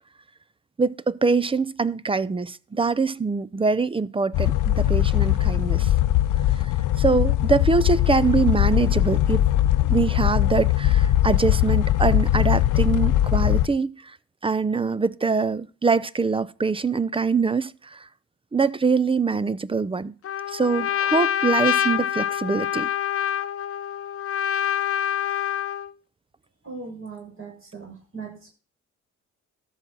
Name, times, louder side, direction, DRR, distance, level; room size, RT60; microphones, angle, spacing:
voice 1, 0.8-5.9 7.0-9.4 9.9-14.1 14.4-18.1 18.5-20.1 20.5-22.9, right 4 dB, 20° right, 0.6 m, -23 dB
sound 1, 4.3-13.7, left 13 dB, 85° left, 0.8 m, -20 dB
Trumpet, 20.2-25.9, left 10 dB, 50° left, 0.8 m, -26 dB
voice 2, 26.6-28.5, right 4 dB, 45° right, 6.4 m, -39 dB
13.5 x 5.8 x 6.1 m
cardioid pair, 90°, 30 cm